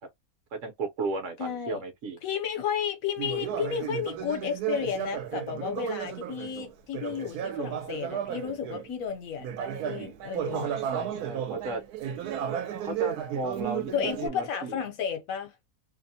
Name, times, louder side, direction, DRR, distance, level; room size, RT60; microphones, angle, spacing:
voice 1, 0.5-2.2 10.5-11.8 12.8-14.8, right 3 dB, 65° right, 1.0 m, -34 dB
voice 2, 1.4-1.8 2.2-10.7 13.9-15.5, left 8 dB, 70° left, 1.0 m, -32 dB
Conversation, 3.2-8.9 9.4-14.3, right 10 dB, 90° right, 1.1 m, -34 dB
2.7 x 2.0 x 2.7 m
omnidirectional pair, 1.6 m